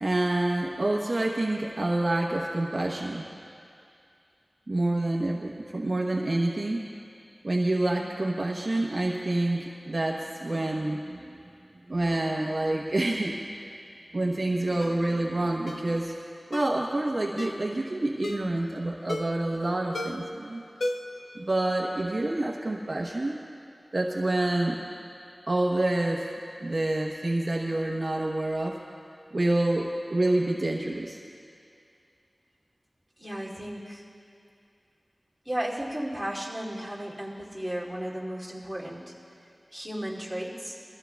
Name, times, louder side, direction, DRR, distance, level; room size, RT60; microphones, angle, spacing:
voice 1, 0.0-3.3 4.7-6.8 7.4-11.4 11.9-13.3 14.1-16.1 16.5-20.6 21.3-23.4 23.9-24.8 25.5-26.3 26.6-28.8 29.3-31.2, right 2 dB, 55° right, -2 dB, 1.0 m, -27 dB
Ringtone, 14.8-15.0 15.7-15.9 16.5-16.8 17.4-17.7 18.2-18.5 19.1-19.5 19.9-20.3 20.8-21.3 21.6-21.7, left 1 dB, 75° left, 0.6 m, -34 dB
voice 2, 33.2-34.0 35.4-39.1 39.7-40.8, right 1 dB, 5° right, -6 dB, 2.7 m, -34 dB
23.0 x 14.5 x 2.3 m, 2.5 s
wide cardioid pair, 60°, 0 cm